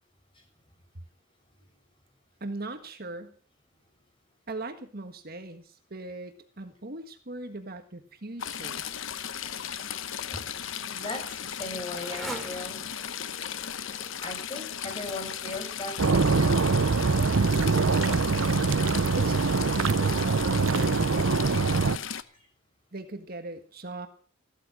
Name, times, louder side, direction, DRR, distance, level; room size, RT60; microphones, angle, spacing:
voice 1, 2.4-3.3 4.5-8.8 19.2-21.8 22.9-24.1, right 2 dB, 50° right, 7 dB, 1.6 m, -40 dB
Stream / Trickle dribble, 8.4-22.2, left 9 dB, 75° left, 0.9 m, -36 dB
Motorcycle, 10.7-15.5, right 1 dB, ahead, 3.9 m, -45 dB
voice 2, 10.9-12.8 14.2-16.8 22.3-22.5, left 1 dB, 25° left, 3 dB, 6.5 m, -38 dB
sound 1, 16.0-22.0, right 4 dB, 80° right, 0.7 m, -24 dB
15.0 x 12.5 x 6.2 m, 0.41 s
head